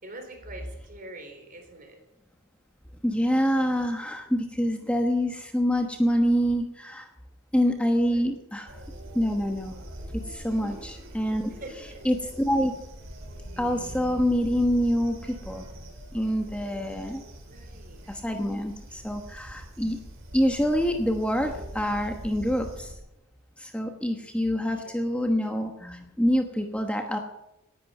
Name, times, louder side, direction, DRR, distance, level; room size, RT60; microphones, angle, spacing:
voice 1, 0.0-2.0 8.0-8.3 10.5-10.8 11.6-12.0 17.5-18.1 24.8-25.0, right 1 dB, 45° right, 4 dB, 3.8 m, -44 dB
voice 2, 3.0-7.1 7.5-8.8 9.1-9.7 10.2-11.5 12.0-12.7 13.5-15.7 16.1-17.2 18.1-20.0 20.3-23.0 23.6-27.2, equal, 5° left, 4 dB, 1.1 m, -26 dB
sound 1, 8.7-22.9, right 1 dB, 75° right, 3.5 m, -43 dB
18.5 x 10.5 x 5.5 m, 0.89 s
head